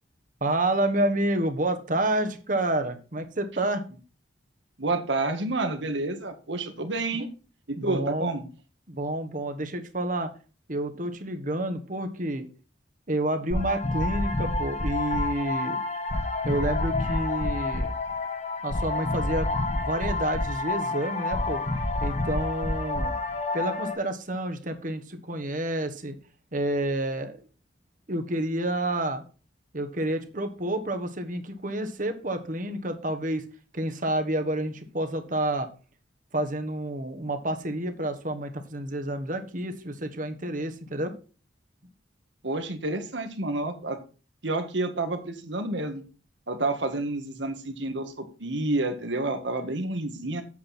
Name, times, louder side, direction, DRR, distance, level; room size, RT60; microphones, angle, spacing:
voice 1, 0.4-3.8 7.1-7.2 7.8-8.3 8.9-10.3 10.7-12.5 13.1-15.8 16.4-17.9 18.6-21.6 22.0-23.1 23.5-26.1 26.5-27.4 28.1-29.2 29.7-33.4 33.7-35.7 36.3-41.1, right 1 dB, 45° right, 7 dB, 1.3 m, -29 dB
voice 2, 4.8-7.3 7.7-8.5 42.4-44.0 44.4-46.0 46.5-50.4, right 2 dB, 75° right, 7 dB, 1.7 m, -29 dB
sound 1, 13.5-23.9, left 2 dB, 35° left, 1.5 m, -28 dB
8.6 x 7.9 x 4.3 m, 0.35 s
head